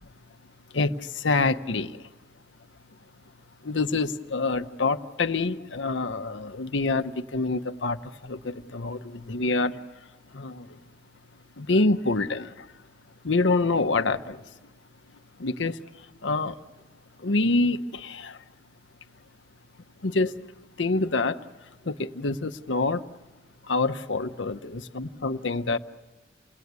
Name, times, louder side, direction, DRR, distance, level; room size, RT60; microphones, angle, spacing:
voice 1, 0.7-2.0 3.6-9.8 10.3-10.8 11.6-12.7 13.2-14.4 15.4-16.6 17.2-18.4 20.0-20.3 20.8-21.4 21.8-23.0 23.6-25.8, left 3 dB, 75° left, 9 dB, 0.9 m, -26 dB
29.0 x 19.0 x 9.5 m, 1.3 s
head